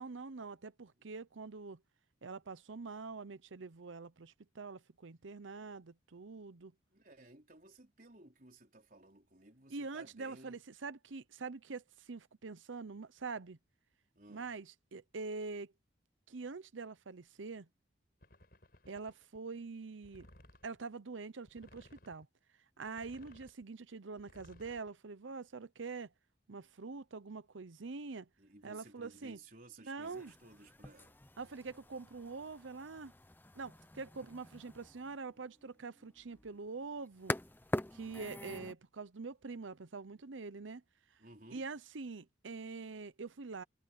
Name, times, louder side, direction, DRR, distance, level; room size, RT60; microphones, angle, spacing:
voice 1, 0.0-1.8 2.2-6.7 9.7-13.6 14.3-15.7 16.3-17.7 18.9-20.3 20.6-22.3 22.8-26.1 26.5-28.3 28.6-29.4 29.9-30.3 31.4-33.1 33.6-37.4 37.9-40.8 41.5-43.6, right 4 dB, 80° right, 0.8 m, -45 dB
voice 2, 6.9-10.6 14.2-14.5 28.4-31.2 41.2-41.7, right 2 dB, 45° right, 4.4 m, -57 dB
sound 1, 18.2-19.4 20.0-20.8 21.5-22.2 22.8-23.6 24.2-24.9, left 1 dB, 50° left, 5.4 m, -60 dB
sound 2, 30.0-38.7, left 1 dB, 10° left, 0.7 m, -45 dB
head